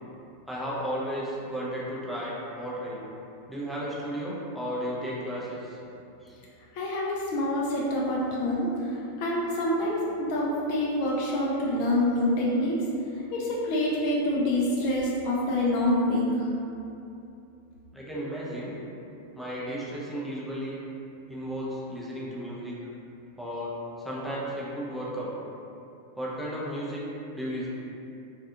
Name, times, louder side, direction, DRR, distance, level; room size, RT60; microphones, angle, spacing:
voice 1, 0.5-3.0 3.5-5.8 6.2-6.4 17.9-18.7 19.3-20.8 21.3-22.8 23.4-25.3 26.2-27.1 27.3-27.7, equal, ahead, -7 dB, 0.6 m, -34 dB
voice 2, 6.7-12.9 13.3-16.5, left 1 dB, 45° left, -4 dB, 0.4 m, -26 dB
3.2 x 2.3 x 2.7 m, 2.8 s
figure-of-eight pair, 90°, 0 cm